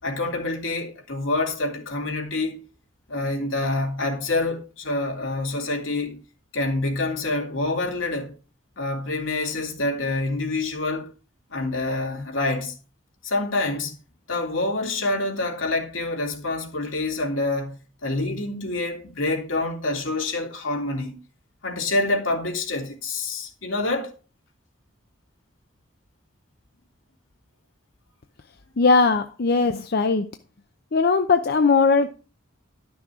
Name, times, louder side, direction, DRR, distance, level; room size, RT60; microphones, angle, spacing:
voice 1, 0.0-2.6 3.1-6.2 6.5-8.3 8.8-11.1 11.5-12.8 13.2-13.9 14.3-21.1 21.6-24.1, left 2 dB, 80° left, 3.2 m, -27 dB
voice 2, 28.8-30.3 30.9-32.1, left 4 dB, 55° left, 0.6 m, -19 dB
12.0 x 6.2 x 4.9 m
head